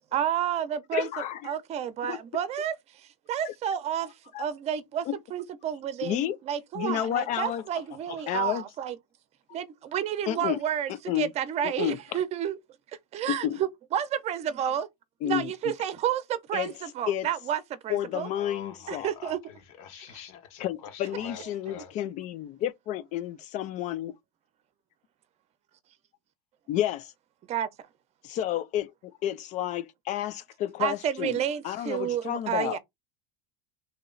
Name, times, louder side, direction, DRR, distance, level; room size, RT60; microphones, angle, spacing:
voice 1, 0.1-1.1 1.4-9.0 9.5-12.6 13.1-14.9 15.2-18.3 18.9-19.4 21.1-21.5 27.5-27.7 30.8-32.8, right 9 dB, 35° right, 0.7 m, -30 dB
voice 2, 0.9-1.6 2.1-2.2 4.3-4.4 5.1-5.2 6.0-6.4 6.8-7.6 8.3-8.6 10.3-10.6 11.1-11.3 11.6-12.0 13.3-13.6 15.2-15.5 16.5-16.7 17.1-17.3 17.9-19.1 20.6-24.2 26.7-27.1 28.2-32.8, left 12 dB, 40° left, 0.4 m, -30 dB
voice 3, 7.7-8.5 18.2-21.9, left 7 dB, 70° left, 1.2 m, -45 dB
3.0 x 2.8 x 3.8 m
supercardioid pair, 125°, 19 cm